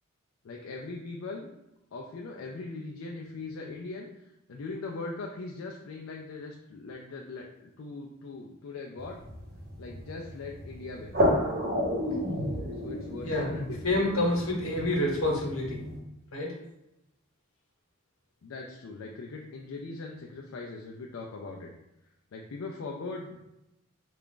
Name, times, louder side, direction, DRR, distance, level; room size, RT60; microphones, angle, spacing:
voice 1, 0.4-1.5 1.9-9.2 9.8-11.2 12.8-14.2 18.4-21.7 22.3-23.4, left 3 dB, 75° left, 0 dB, 0.4 m, -40 dB
sound 1, 9.0-16.0, equal, 45° right, 0.9 m, -32 dB
voice 2, 13.8-15.8 16.3-16.5, left 1 dB, 90° left, -1 dB, 1.0 m, -28 dB
3.4 x 2.4 x 3.7 m, 0.89 s
head